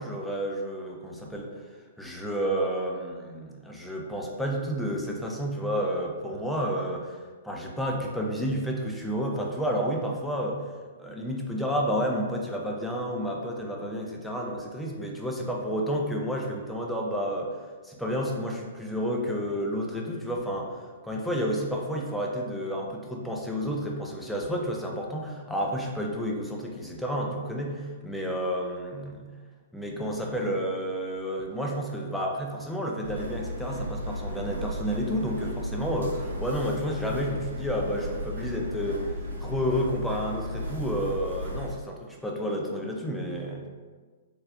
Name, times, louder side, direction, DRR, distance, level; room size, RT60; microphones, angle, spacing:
voice 1, 0.0-1.5 2.0-7.2 7.4-10.6 11.0-17.6 17.8-29.1 29.7-39.1 39.4-43.6, equal, 5° left, -1 dB, 0.4 m, -30 dB
sound 1, 33.0-41.7, left 1 dB, 75° right, 0.7 m, -35 dB
3.7 x 2.4 x 2.3 m, 1.4 s
figure-of-eight pair, 120°, 0 cm